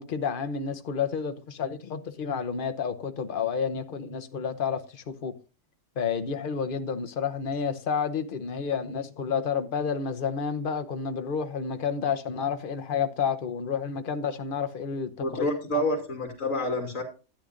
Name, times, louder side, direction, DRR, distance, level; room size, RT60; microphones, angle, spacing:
voice 1, 0.0-5.3 6.0-15.5, left 6 dB, 45° left, 1.1 m, -30 dB
voice 2, 15.2-17.0, left 1 dB, 70° left, 3.2 m, -28 dB
13.0 x 9.9 x 2.6 m
omnidirectional pair, 1.4 m